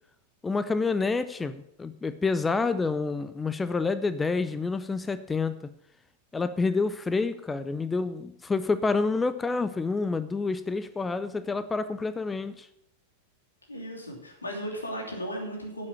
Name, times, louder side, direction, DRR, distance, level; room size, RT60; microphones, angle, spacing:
voice 1, 0.4-5.6 6.3-12.7, left 4 dB, 15° left, 13 dB, 0.6 m, -28 dB
voice 2, 13.7-15.9, equal, 85° left, 1 dB, 2.9 m, -36 dB
9.6 x 7.4 x 7.1 m, 0.74 s
figure-of-eight pair, 95°, 0 cm